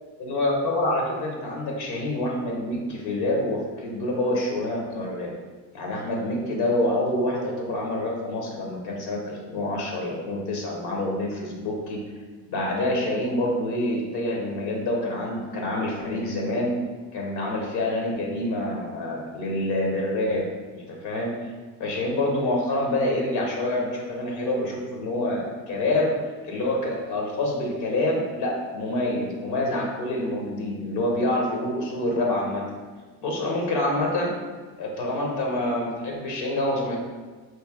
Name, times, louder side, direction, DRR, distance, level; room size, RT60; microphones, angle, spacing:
voice 1, 0.2-5.3 5.7-12.0 12.5-16.7 17.1-20.5 20.7-21.5 21.8-26.1 26.4-32.6 33.2-34.3 34.8-37.0, left 1 dB, 80° left, -1 dB, 0.9 m, -27 dB
3.2 x 2.6 x 3.6 m, 1.4 s
supercardioid pair, 75°, 39 cm